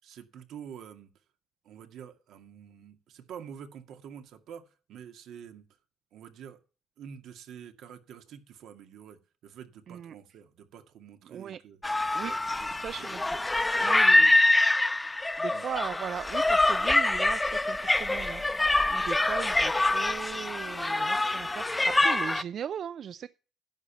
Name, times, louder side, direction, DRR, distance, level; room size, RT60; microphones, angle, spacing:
voice 1, 0.0-1.1 1.6-5.6 6.1-6.6 7.0-11.8 12.2-13.1 13.8-14.4 15.5-15.7, right 8 dB, 80° right, 2.1 m, -47 dB
voice 2, 11.3-11.6 12.1-12.3 12.8-13.4 13.8-14.3 15.4-18.4 18.9-23.3, right 9 dB, 65° right, 0.5 m, -38 dB
sound 1, 11.8-22.4, left 2 dB, 15° left, 0.9 m, -25 dB
10.5 x 7.3 x 7.2 m
cardioid pair, 90°, 0 cm